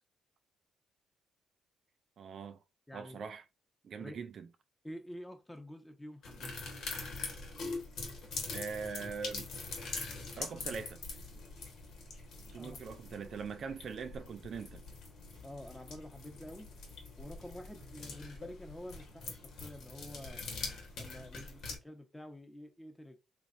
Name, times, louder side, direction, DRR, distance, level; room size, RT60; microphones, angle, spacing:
voice 1, 2.2-2.6 2.9-3.4 3.8-4.5 8.5-9.5 10.4-11.0 12.5-14.8, right 5 dB, 55° right, 0.4 m, -42 dB
voice 2, 2.9-3.2 4.0-4.2 4.8-6.5 12.5-12.8 15.4-16.7 17.2-20.4 21.0-23.2, left 1 dB, 10° left, 0.9 m, -48 dB
sound 1, 6.2-21.8, left 3 dB, 75° left, 1.3 m, -44 dB
4.0 x 3.1 x 2.5 m
cardioid pair, 90°, 0 cm